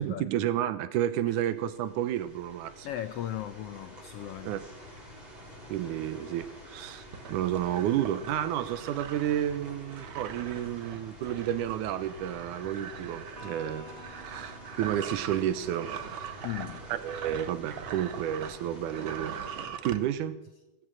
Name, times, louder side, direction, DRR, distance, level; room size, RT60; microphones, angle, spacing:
voice 1, 0.0-2.9 4.4-4.6 5.7-7.0 7.3-13.9 14.3-16.3 16.9-20.4, right 11 dB, 85° right, 2.4 m, -31 dB
sound 1, 1.4-19.7, left 1 dB, 40° right, 5.0 m, -48 dB
voice 2, 2.8-4.5 16.4-16.8, left 12 dB, 90° left, 1.3 m, -37 dB
sound 2, 7.1-18.6 18.9-20.0, right 8 dB, 65° right, 1.2 m, -42 dB
Electric guitar, 13.3-16.9, right 2 dB, 15° right, 2.3 m, -51 dB
16.0 x 14.0 x 6.3 m
omnidirectional pair, 3.5 m